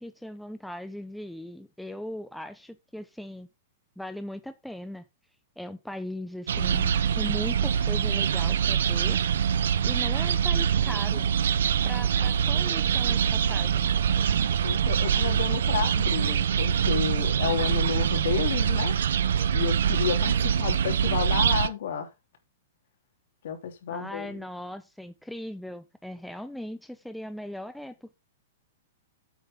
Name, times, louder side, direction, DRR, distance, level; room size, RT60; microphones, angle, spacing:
voice 1, 0.0-3.5 4.0-5.0 5.6-9.2 9.8-11.3 11.8-13.9 23.9-28.1, left 1 dB, ahead, 0.6 m, -38 dB
sound 1, 6.5-21.7, right 8 dB, 80° right, 0.8 m, -24 dB
voice 2, 14.6-19.0 19.5-22.1 23.4-24.4, left 8 dB, 65° left, 3.1 m, -31 dB
9.3 x 8.1 x 3.6 m
hypercardioid pair, 150°, 0 cm